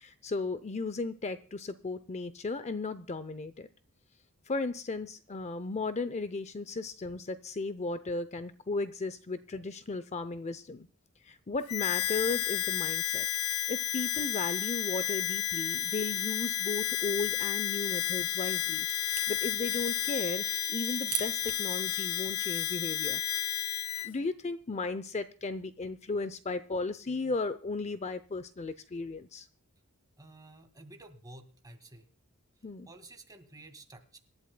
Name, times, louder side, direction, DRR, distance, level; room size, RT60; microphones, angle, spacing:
voice 1, 0.0-3.7 4.5-10.9 11.2-23.2 24.0-29.5 32.6-32.9, left 3 dB, 30° left, 13 dB, 0.6 m, -35 dB
Harmonica, 11.7-24.1, left 11 dB, 75° left, 0.6 m, -32 dB
sound 1, 17.1-21.7, right 12 dB, 75° right, 2.0 m, -43 dB
voice 2, 30.2-32.1 32.6-34.2, right 2 dB, 15° right, 6 dB, 1.9 m, -52 dB
25.5 x 11.5 x 2.2 m, 0.38 s
head